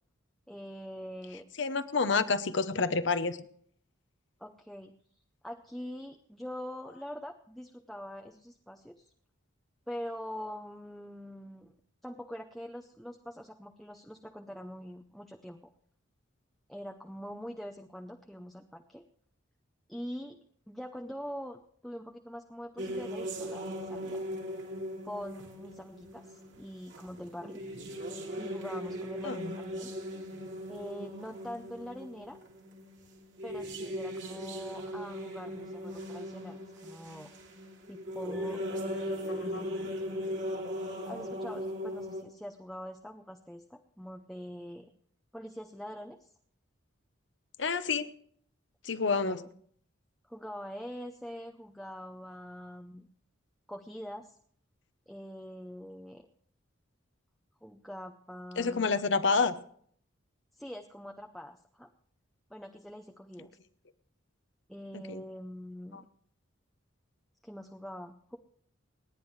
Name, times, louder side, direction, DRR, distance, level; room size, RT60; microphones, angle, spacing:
voice 1, 0.5-1.4 4.4-9.1 9.9-11.7 12.0-15.7 16.7-19.0 19.9-20.4 20.7-24.2 25.0-27.6 28.4-29.9 30.7-32.4 33.4-37.3 37.9-39.9 41.1-44.9 45.3-46.3 49.2-49.5 50.2-53.1 53.7-54.4 55.1-56.2 57.6-58.9 60.5-61.9 62.5-63.5 64.7-66.0 67.4-68.4, equal, ahead, 3 dB, 0.6 m, -44 dB
voice 2, 1.6-3.4 29.2-29.6 39.5-39.6 47.6-48.1 48.8-49.4 58.6-59.5 64.9-65.2 65.9-66.0, left 4 dB, 60° left, 12 dB, 0.8 m, -28 dB
sound 1, 22.8-42.2, equal, 60° right, 2.7 m, -39 dB
28.5 x 10.0 x 3.2 m, 0.62 s
head